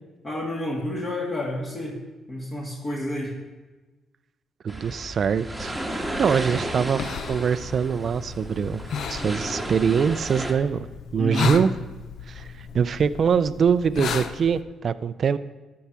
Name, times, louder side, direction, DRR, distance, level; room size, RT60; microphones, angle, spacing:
voice 1, 0.2-2.0 2.3-3.3 11.2-11.6, left 1 dB, 30° left, -3 dB, 2.5 m, -29 dB
voice 2, 4.6-5.7 6.2-8.8 9.1-10.9 11.1-11.7 12.3-12.5 12.7-15.4, right 7 dB, 50° right, 14 dB, 0.4 m, -23 dB
sound 1, 4.7-10.5, right 1 dB, ahead, 1.6 m, -33 dB
sound 2, 5.6-14.6, left 6 dB, 70° left, 0.6 m, -35 dB
13.0 x 4.7 x 6.9 m, 1.2 s
cardioid pair, 90°, 0 cm